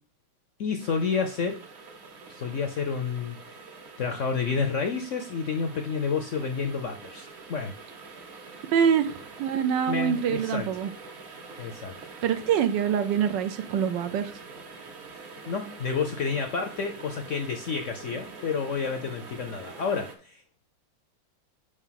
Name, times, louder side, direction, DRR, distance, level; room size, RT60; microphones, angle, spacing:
voice 1, 0.6-1.6 2.3-3.4 4.0-7.7 9.9-10.7 11.6-11.9 15.1-20.4, left 5 dB, 60° left, 5 dB, 0.8 m, -30 dB
sound 1, 0.8-20.2, right 4 dB, 45° right, 0.9 m, -45 dB
voice 2, 8.7-10.9 12.2-14.3, right 8 dB, 75° right, 9 dB, 1.4 m, -25 dB
5.0 x 4.9 x 5.7 m, 0.41 s
omnidirectional pair, 2.0 m